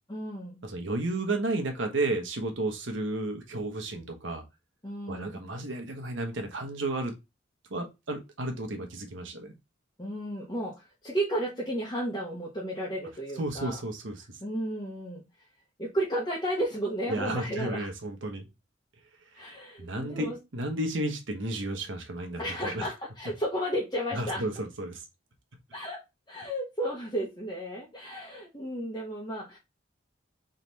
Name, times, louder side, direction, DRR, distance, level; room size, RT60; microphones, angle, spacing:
voice 1, 0.1-0.6 4.8-5.4 10.0-13.8 14.4-15.2 15.8-17.9 19.3-20.4 22.4-24.4 25.7-26.0 26.3-29.6, right 1 dB, 20° left, -4 dB, 1.1 m, -33 dB
voice 2, 0.6-4.4 5.1-7.1 7.7-9.5 13.4-14.2 17.1-18.5 19.8-22.9 24.1-25.0, right 2 dB, 80° right, 5 dB, 1.2 m, -32 dB
4.0 x 3.2 x 4.1 m, 0.24 s
head